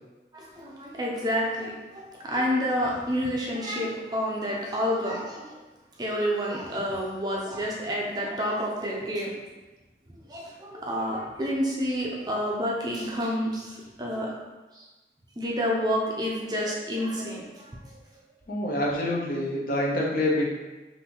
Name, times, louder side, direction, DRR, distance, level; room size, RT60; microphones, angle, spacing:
voice 1, 0.3-5.6 6.0-9.3 10.3-14.3 14.7-14.9 15.4-17.7, equal, 25° right, -3 dB, 0.5 m, -29 dB
voice 2, 18.5-20.5, left 1 dB, 50° left, -3 dB, 0.7 m, -26 dB
5.3 x 2.6 x 2.9 m, 1.2 s
head